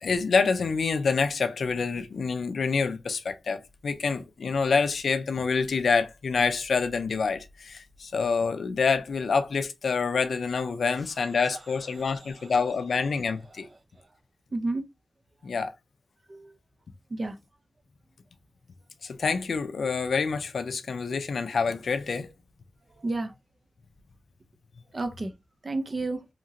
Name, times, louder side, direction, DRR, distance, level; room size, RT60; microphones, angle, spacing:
voice 1, 0.0-13.7 15.4-15.7 19.0-22.3, left 5 dB, 75° left, 0.4 m, -27 dB
voice 2, 14.5-14.8 16.3-16.5 17.1-17.4 23.0-23.3 24.9-25.3 25.6-26.3, right 2 dB, 40° right, 0.5 m, -30 dB
2.8 x 2.8 x 2.5 m
wide cardioid pair, 120°, 0 cm